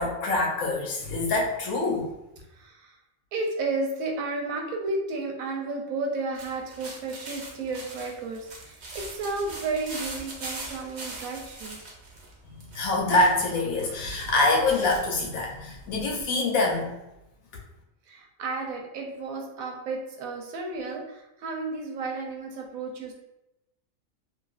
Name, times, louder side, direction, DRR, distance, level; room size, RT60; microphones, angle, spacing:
voice 1, 0.0-2.1 12.7-16.9, left 2 dB, 90° left, -1 dB, 1.1 m, -25 dB
voice 2, 2.5-3.0 3.3-11.8 18.1-23.1, right 3 dB, 90° right, 1 dB, 1.0 m, -32 dB
sound 1, 6.4-16.2, right 2 dB, 50° right, 0.5 m, -42 dB
2.8 x 2.5 x 2.3 m, 0.90 s
omnidirectional pair, 1.4 m